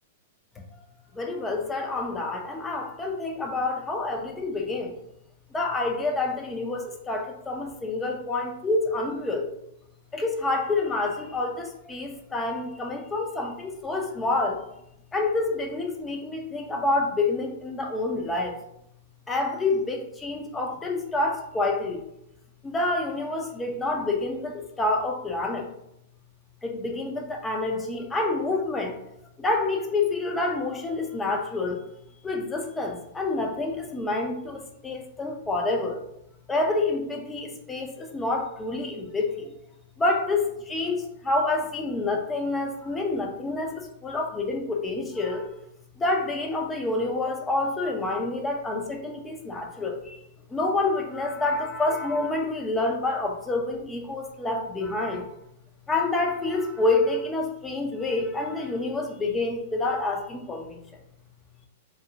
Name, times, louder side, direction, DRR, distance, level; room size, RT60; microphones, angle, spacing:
voice 1, 1.1-5.0 5.5-9.5 10.1-14.6 15.1-18.6 19.3-22.0 22.6-25.7 26.6-29.0 29.4-31.8 32.2-36.0 36.5-39.5 40.0-45.5 46.0-50.2 50.5-55.3 55.9-60.8, left 2 dB, 15° left, 2 dB, 0.5 m, -28 dB
2.5 x 2.0 x 2.7 m, 0.80 s
hypercardioid pair, 120°, 0 cm